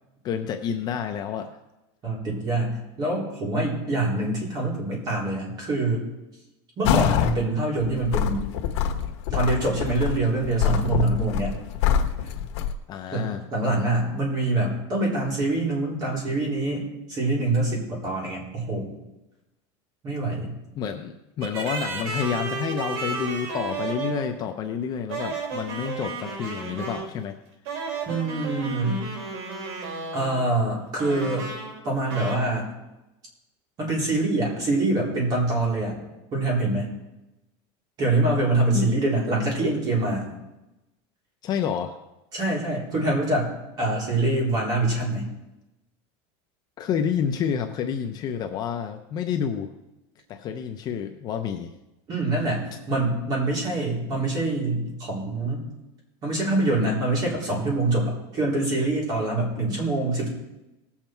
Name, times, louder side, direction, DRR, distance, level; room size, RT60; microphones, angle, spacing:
voice 1, 0.2-1.6 12.9-13.4 20.8-27.3 38.7-38.9 41.4-42.0 46.8-49.7 50.3-51.7, left 7 dB, 30° left, 6 dB, 0.6 m, -29 dB
voice 2, 2.0-6.0 6.8-8.4 9.3-11.5 13.1-18.9 20.0-20.5 28.0-29.0 30.1-31.5 31.8-32.7 33.8-35.9 36.3-36.9 38.0-40.3 42.3-43.5 43.8-45.3 52.1-55.7 56.2-60.3, right 2 dB, 30° right, -3 dB, 3.8 m, -25 dB
sound 1, 6.8-7.4 7.8-12.7, left 8 dB, 80° left, 1.2 m, -25 dB
sound 2, 21.4-24.3 25.1-27.2 27.6-30.5 31.0-31.8 32.1-32.3, right 4 dB, 65° right, 3.1 m, -33 dB
18.5 x 7.3 x 4.5 m, 0.98 s
supercardioid pair, 175°, 14 cm